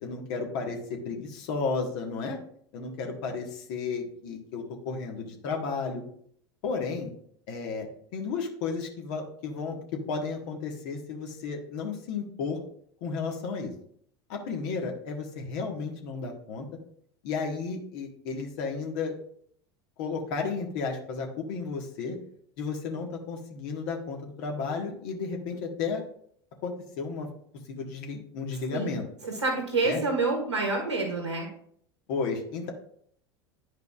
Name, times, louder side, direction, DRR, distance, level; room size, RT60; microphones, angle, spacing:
voice 1, 0.0-2.4 2.7-6.0 6.6-7.1 7.5-7.9 8.1-9.8 10.1-12.6 13.0-13.7 14.3-16.6 17.2-19.1 20.0-22.2 22.6-26.0 26.6-27.3 27.7-29.1 29.8-30.0 32.1-32.7, left 4 dB, 60° left, 2 dB, 1.4 m, -33 dB
voice 2, 29.2-31.5, right 3 dB, 90° right, -1 dB, 1.7 m, -28 dB
10.5 x 4.9 x 2.4 m, 0.63 s
hypercardioid pair, 80°, 14 cm